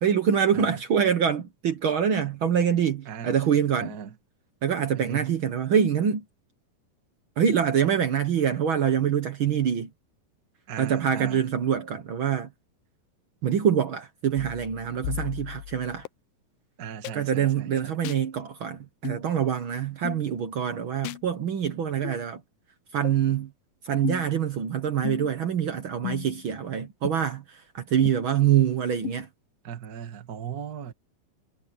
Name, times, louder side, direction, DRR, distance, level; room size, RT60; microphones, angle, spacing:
voice 1, 0.0-3.9 4.6-6.2 7.4-9.9 10.8-12.5 13.4-16.1 17.1-22.4 22.9-23.5 23.8-29.3, right 8 dB, 75° right, 1.1 m, -25 dB
voice 2, 3.1-3.4 3.8-4.1 4.9-5.3 10.7-11.4 16.8-17.9 29.6-30.9, right 8 dB, 35° right, 1.6 m, -38 dB
sound 1, 14.4-16.1 17.0-17.2 18.0-18.2 19.0-19.2 20.0-20.2 21.0-21.2 22.0-22.2 23.0-23.2 24.0-24.4 25.0-25.4 26.0-26.5 27.0-27.1 28.1-28.2 29.0-29.1, left 17 dB, 85° left, 2.5 m, -35 dB
omnidirectional pair, 4.1 m